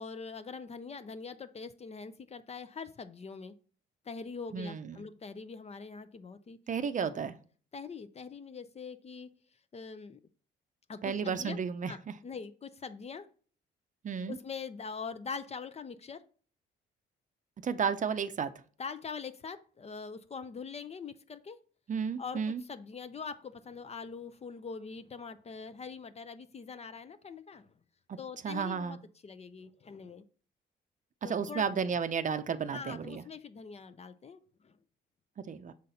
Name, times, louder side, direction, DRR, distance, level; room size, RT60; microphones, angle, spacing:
voice 1, 0.0-3.5 4.0-6.6 7.0-7.1 7.7-9.3 9.7-10.2 10.9-11.6 11.9-13.3 14.3-16.2 18.8-21.6 22.2-27.7 28.2-29.0 29.2-30.2 31.2-31.9 32.7-34.8, left 5 dB, 30° left, 12 dB, 0.5 m, -43 dB
voice 2, 4.5-5.0 6.7-7.3 11.0-12.1 14.0-14.4 17.6-18.5 21.9-22.6 28.1-28.2 28.4-29.0 31.2-33.2 35.5-35.7, right 6 dB, 40° right, 11 dB, 0.6 m, -33 dB
6.5 x 4.1 x 4.0 m, 0.42 s
cardioid pair, 90°, 20 cm